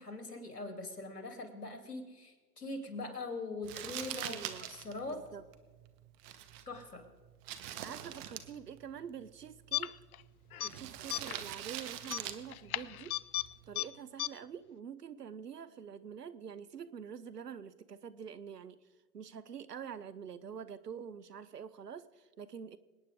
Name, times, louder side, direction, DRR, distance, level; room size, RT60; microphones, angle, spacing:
voice 1, 0.0-4.4 4.7-5.2 6.7-7.1, left 2 dB, 85° left, 4 dB, 2.9 m, -42 dB
Crumpling crinkling, 3.6-13.8, right 11 dB, 40° right, 1.2 m, -46 dB
voice 2, 4.2-4.7 5.1-5.4 7.8-9.9 10.6-13.2 13.7-18.8 19.1-22.8, right 7 dB, 90° right, 16 dB, 0.8 m, -46 dB
sound 1, 9.7-10.2 10.5-10.7 11.1-11.4 12.0-13.5 13.8-13.9 14.2-14.3, left 13 dB, 65° left, 0.6 m, -35 dB
27.0 x 9.4 x 3.7 m, 1.3 s
hypercardioid pair, 105°, 46 cm